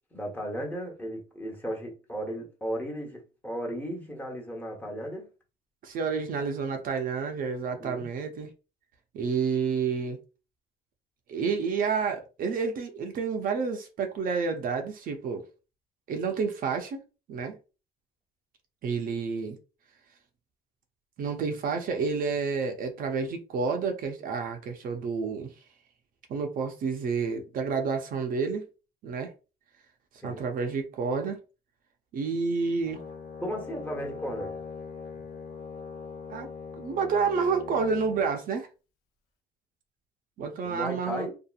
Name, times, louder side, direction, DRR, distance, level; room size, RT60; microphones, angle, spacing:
voice 1, 0.1-5.3 7.8-8.1 30.2-30.4 33.4-34.6 40.6-41.4, equal, 10° left, 0.9 m, -35 dB
voice 2, 5.8-8.5 9.1-10.2 11.3-15.4 16.1-17.0 17.3-17.6 18.8-19.6 21.2-25.5 26.3-28.7 29.0-29.3 30.2-31.4 32.1-33.0 36.3-36.5 36.8-38.7 40.4-41.3, right 5 dB, 55° right, 0.6 m, -29 dB
Brass instrument, 32.8-38.3, left 5 dB, 80° left, 0.8 m, -41 dB
2.7 x 2.4 x 2.4 m
cardioid pair, 110°, 17 cm